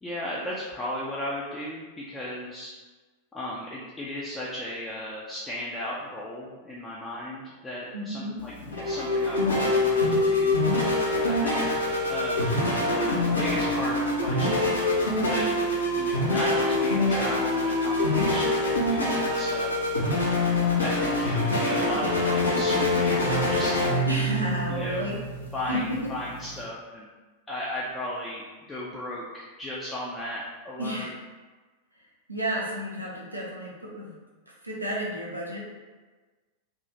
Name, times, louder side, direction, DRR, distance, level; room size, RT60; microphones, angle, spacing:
voice 1, 0.0-2.7 3.3-10.6 11.3-12.4 12.9-14.6 15.2-15.6 15.9-19.8 20.8-24.1 24.7-25.1 25.5-27.1 27.5-31.1, left 1 dB, 15° left, -6 dB, 0.4 m, -35 dB
voice 2, 7.9-8.4 21.7-22.0 24.0-25.2 25.7-26.1 30.8-31.1 32.3-34.2 34.6-35.7, equal, 85° right, -4 dB, 0.5 m, -31 dB
sound 1, 8.4-26.6, left 2 dB, 75° left, 0.6 m, -25 dB
2.5 x 2.3 x 3.0 m, 1.3 s
figure-of-eight pair, 90°, 0 cm